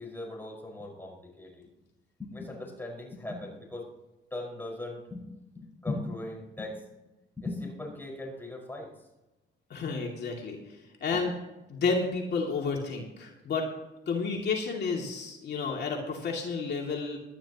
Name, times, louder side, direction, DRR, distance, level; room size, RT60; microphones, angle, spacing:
voice 1, 0.0-1.6 2.2-3.9 4.3-5.3 5.5-6.8 7.4-8.9 11.1-11.2, left 2 dB, 10° left, -1 dB, 5.4 m, -38 dB
voice 2, 9.7-11.3 11.7-13.7 14.1-17.2, left 4 dB, 55° left, -1 dB, 2.6 m, -31 dB
19.0 x 12.0 x 3.0 m, 1.0 s
cardioid pair, 90°, 20 cm